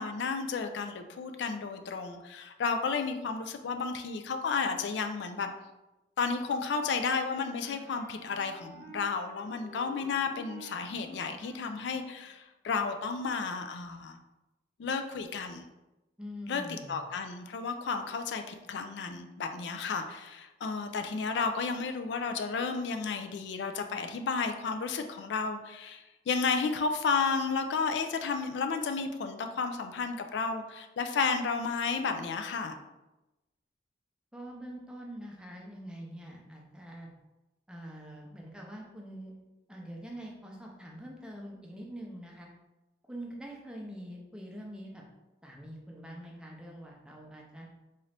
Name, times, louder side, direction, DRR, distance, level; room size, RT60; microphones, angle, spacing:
voice 1, 0.0-5.5 6.2-14.2 14.8-15.7 16.5-16.6 16.9-32.8, left 5 dB, 70° left, 6 dB, 0.3 m, -32 dB
Wind instrument woodwind instrument, 7.1-12.3, right 2 dB, 50° right, 0.7 m, -51 dB
voice 2, 16.2-17.0 34.3-37.1 37.7-39.4 39.7-42.5 43.1-45.0 45.4-47.7, equal, 5° right, -2 dB, 0.5 m, -44 dB
3.9 x 2.5 x 3.2 m, 1.0 s
head